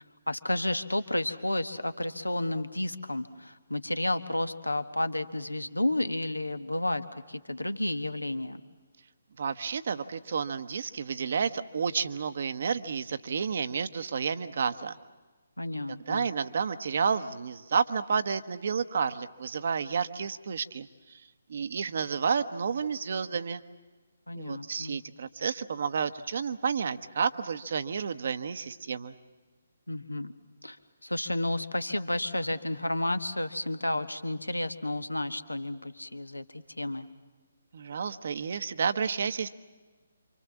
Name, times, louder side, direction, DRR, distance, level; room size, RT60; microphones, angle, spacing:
voice 1, 0.3-8.6 15.6-16.3 24.3-25.0 29.9-30.3 30.6-30.8 31.0-37.1, left 1 dB, 80° left, 10 dB, 1.3 m, -31 dB
voice 2, 9.4-15.0 16.1-21.2 21.5-23.6 24.3-29.1 37.7-39.5, right 6 dB, 50° right, 12 dB, 1.0 m, -31 dB
27.5 x 25.5 x 7.3 m, 1.3 s
figure-of-eight pair, 140°, 0 cm